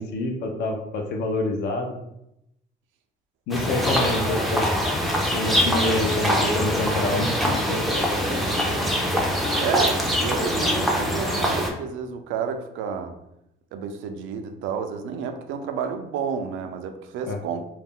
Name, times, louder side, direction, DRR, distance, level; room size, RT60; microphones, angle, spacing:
voice 1, 0.0-1.9 3.5-4.7 5.3-8.1 17.2-17.4, left 2 dB, 65° left, 3 dB, 0.5 m, -27 dB
sound 1, 3.5-11.7, equal, ahead, 0.4 m, -23 dB
voice 2, 9.5-13.1 13.7-17.8, right 6 dB, 80° right, 6 dB, 0.4 m, -30 dB
2.3 x 2.0 x 3.5 m, 0.82 s
cardioid pair, 135°, 20 cm